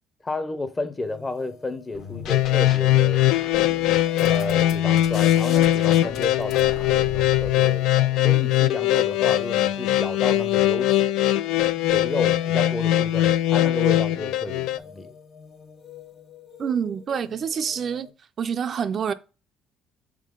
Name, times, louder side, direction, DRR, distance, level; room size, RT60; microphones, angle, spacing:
voice 1, 0.2-3.3 4.2-11.1 11.9-15.1, left 2 dB, 20° left, 0.6 m, -32 dB
sound 1, 1.0-18.1, left 5 dB, 40° left, 1.1 m, -47 dB
sound 2, 1.9-2.8 3.1-7.5, left 6 dB, 60° left, 1.1 m, -38 dB
sound 3, 2.3-14.8, left 14 dB, 85° left, 0.3 m, -21 dB
voice 2, 16.6-18.1 18.4-19.1, right 7 dB, 40° right, 0.4 m, -27 dB
6.8 x 3.7 x 3.7 m
cardioid pair, 135°, 0 cm